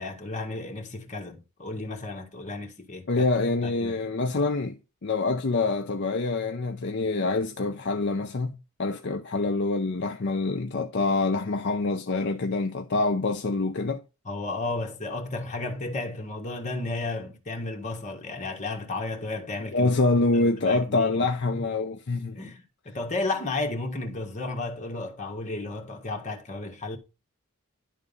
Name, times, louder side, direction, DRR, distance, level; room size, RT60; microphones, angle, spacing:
voice 1, 0.0-3.1 3.6-3.9 14.2-19.9 20.3-21.7 22.3-27.0, left 2 dB, 35° left, 1.6 m, -33 dB
voice 2, 3.1-14.0 19.7-22.4, left 3 dB, 50° left, 0.6 m, -26 dB
11.0 x 3.7 x 5.2 m
head